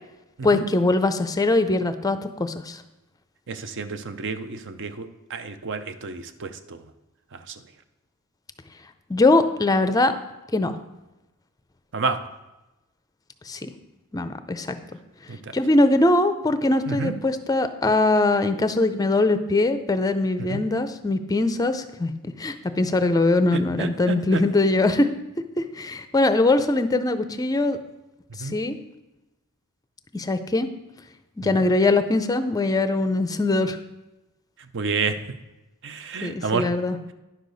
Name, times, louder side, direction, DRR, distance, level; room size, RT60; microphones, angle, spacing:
voice 1, 0.4-2.8 9.1-10.1 10.5-10.8 13.5-13.7 14.1-14.8 15.5-25.1 25.6-27.8 28.4-28.8 30.1-30.7 31.4-33.8 36.2-37.0, left 2 dB, 15° left, 10 dB, 0.5 m, -22 dB
voice 2, 3.5-6.8 7.3-7.5 11.9-12.2 15.3-15.4 16.9-17.1 20.5-20.6 23.8-24.4 28.4-28.6 34.7-35.2 35.8-36.7, right 4 dB, 55° right, 10 dB, 0.6 m, -29 dB
10.5 x 6.6 x 4.0 m, 1.0 s
head